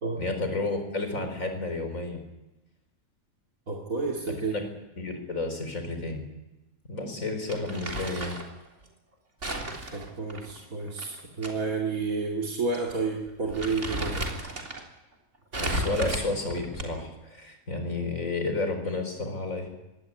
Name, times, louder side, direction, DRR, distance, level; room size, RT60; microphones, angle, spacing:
voice 1, 0.2-2.2 4.5-4.6 5.0-6.2 6.9-8.3 15.5-19.7, left 2 dB, 70° left, 6 dB, 4.8 m, -31 dB
voice 2, 3.7-4.6 9.9-14.2, right 4 dB, 80° right, -1 dB, 2.9 m, -30 dB
Crumpling crinkling, 7.5-8.5 9.4-11.5 11.8-11.9 12.7-12.9 13.3-14.8 15.5-17.1, right 1 dB, 55° right, 3.7 m, -33 dB
23.0 x 17.5 x 9.8 m, 1.0 s
omnidirectional pair, 1.5 m